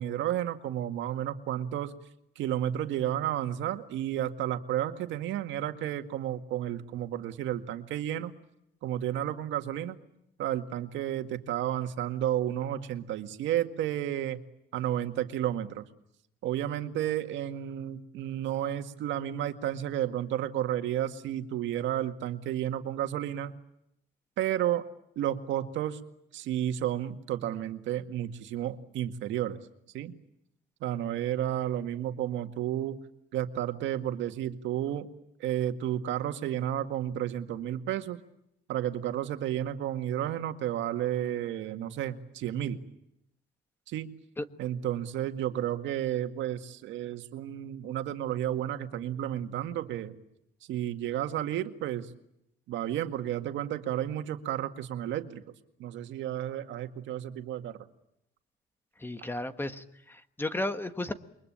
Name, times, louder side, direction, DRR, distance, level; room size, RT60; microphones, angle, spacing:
voice 1, 0.0-1.9 2.4-8.3 8.8-10.0 10.4-14.4 14.7-15.8 16.4-23.5 24.4-24.9 25.2-26.0 26.3-29.6 29.9-30.1 30.8-33.0 33.3-35.1 35.4-38.2 38.7-42.8 43.9-44.1 44.6-50.2 50.6-52.1 52.7-55.4 55.8-57.9, right 11 dB, 90° right, 7 dB, 2.0 m, -32 dB
voice 2, 59.0-61.1, left 1 dB, 10° left, 10 dB, 1.5 m, -34 dB
29.0 x 23.0 x 8.8 m, 0.78 s
cardioid pair, 140°, 19 cm